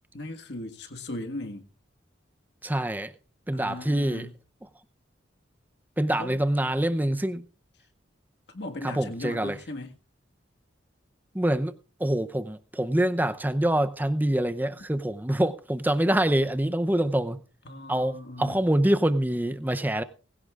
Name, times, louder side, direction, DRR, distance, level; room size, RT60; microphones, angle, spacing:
voice 1, 0.1-1.7 3.5-4.4 6.2-6.4 8.5-9.9 17.7-18.6, left 1 dB, 60° left, 1.8 m, -38 dB
voice 2, 2.6-3.1 3.5-4.3 6.0-7.4 8.8-9.6 11.3-11.7 12.0-17.4 17.9-20.0, right 1 dB, 10° right, 0.7 m, -25 dB
20.0 x 16.0 x 2.5 m
head